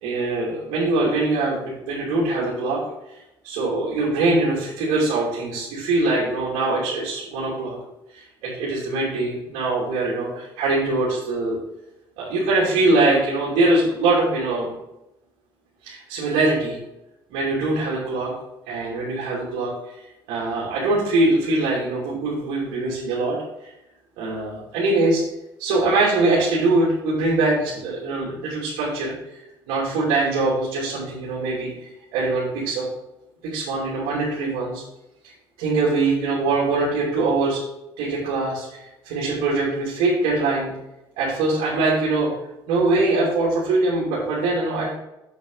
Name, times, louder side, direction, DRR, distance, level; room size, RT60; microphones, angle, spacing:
voice 1, 0.0-2.8 3.4-7.8 8.1-11.6 12.2-14.7 15.8-16.8 17.3-18.3 18.7-19.7 20.3-23.4 23.6-23.7 24.2-25.2 25.6-29.4 29.7-31.7 32.1-32.9 33.4-34.8 35.2-35.3 35.6-37.6 38.0-40.7 41.2-42.3 42.7-44.9, right 2 dB, 85° right, -6 dB, 2.8 m, -22 dB
7.6 x 7.2 x 4.0 m, 0.90 s
cardioid pair, 105°, 10 cm